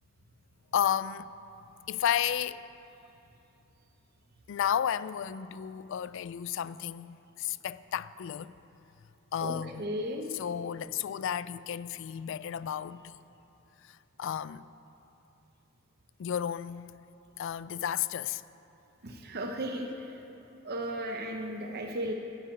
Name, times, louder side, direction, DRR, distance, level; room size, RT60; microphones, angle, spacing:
voice 1, 0.7-1.3 1.9-2.6 4.5-8.5 9.3-9.9 10.3-13.2 13.8-14.7 16.2-17.0 17.4-18.4, left 9 dB, 60° left, 0.3 m, -32 dB
voice 2, 9.4-10.3 19.0-20.1 20.6-22.1, right 1 dB, 50° right, 0.8 m, -35 dB
12.5 x 6.1 x 9.1 m
head